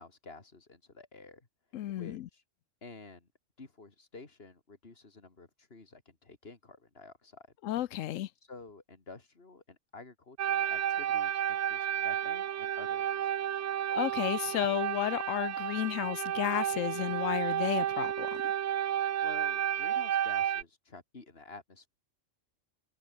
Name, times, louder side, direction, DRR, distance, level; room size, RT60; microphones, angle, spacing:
voice 1, 0.0-1.5 1.9-2.4 2.8-3.3 3.6-7.5 8.5-13.6 19.2-21.9, left 3 dB, 50° left, 2.8 m, -51 dB
voice 2, 1.7-2.3 7.6-8.3 13.9-18.4, left 13 dB, 90° left, 1.0 m, -32 dB
sound 1, 10.4-20.6, right 10 dB, 65° right, 1.0 m, -31 dB
omnidirectional pair, 1.3 m